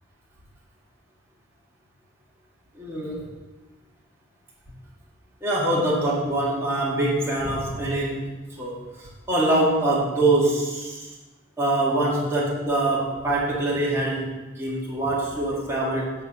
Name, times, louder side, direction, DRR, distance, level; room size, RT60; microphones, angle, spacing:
voice 1, 2.7-3.3 5.4-10.9 11.6-16.1, right 1 dB, 10° right, -6 dB, 1.8 m, -24 dB
8.1 x 4.4 x 6.4 m, 1.2 s
head